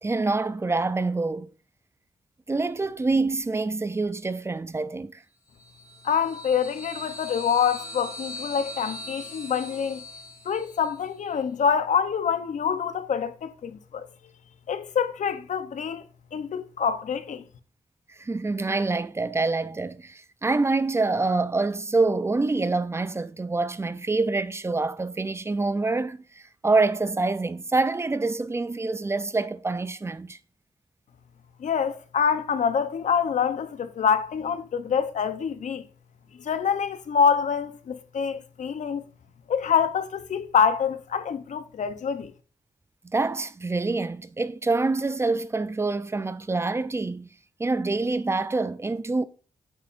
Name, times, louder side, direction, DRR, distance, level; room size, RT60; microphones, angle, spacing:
voice 1, 0.0-1.5 2.5-5.2 18.2-30.4 43.0-47.3 47.6-49.2, right 3 dB, 20° right, 0.5 m, -26 dB
sound 1, 5.6-11.0, left 1 dB, 30° left, 4.0 m, -41 dB
voice 2, 6.0-10.0 10.4-14.1 14.7-16.0 16.3-17.5 31.6-35.9 36.4-39.0 39.5-42.3, left 7 dB, 80° left, 0.8 m, -26 dB
9.0 x 7.0 x 2.6 m
wide cardioid pair, 115°, 12 cm